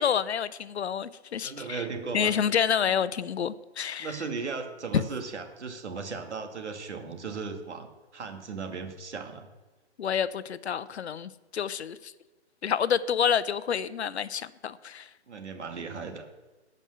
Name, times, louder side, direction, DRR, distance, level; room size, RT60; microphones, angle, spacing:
voice 1, 0.0-1.8 2.1-4.1 4.9-5.0 10.0-12.1 12.6-15.1, left 8 dB, 70° left, 16 dB, 0.7 m, -28 dB
voice 2, 1.4-2.3 2.8-3.0 4.0-9.5 15.3-16.3, right 5 dB, 85° right, 5 dB, 2.2 m, -37 dB
12.0 x 5.4 x 7.7 m, 1.2 s
hypercardioid pair, 160°, 34 cm